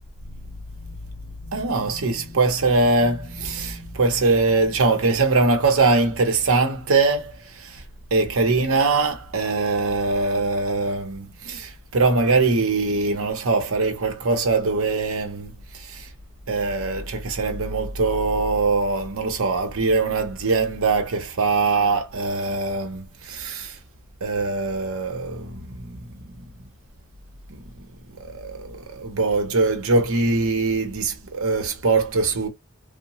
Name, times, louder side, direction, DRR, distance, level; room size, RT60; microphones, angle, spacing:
voice 1, 0.8-7.8 8.1-16.1 16.5-23.8 24.2-26.0 27.5-27.6 28.2-32.5, right 3 dB, 65° right, 0.8 m, -22 dB
2.7 x 2.1 x 2.9 m
head